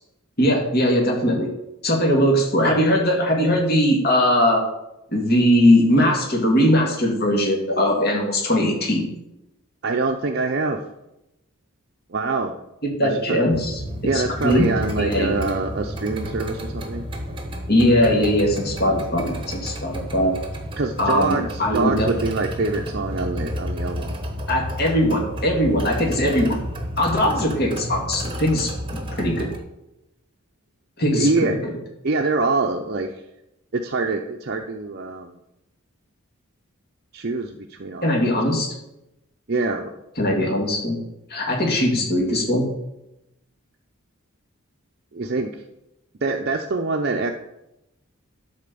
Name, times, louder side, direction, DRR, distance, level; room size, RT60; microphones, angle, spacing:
voice 1, 0.4-1.5 1.8-4.6 5.1-9.0 12.8-13.8 14.1-14.7 15.0-15.4 17.7-20.4 21.0-22.1 24.5-26.6 27.0-29.5 31.0-31.7 38.0-38.7 40.2-41.0 41.3-42.7, left 1 dB, 45° left, -1 dB, 2.1 m, -20 dB
voice 2, 9.8-10.8 12.1-12.5 13.0-13.4 14.0-17.0 20.8-24.1 31.1-31.5 32.0-33.1 33.7-35.4 37.1-38.4 39.5-39.9 45.1-45.5 46.2-47.3, right 3 dB, 50° right, 2 dB, 0.6 m, -24 dB
sound 1, 13.5-29.6, equal, 25° right, 1.1 m, -31 dB
11.5 x 4.4 x 6.9 m, 0.90 s
head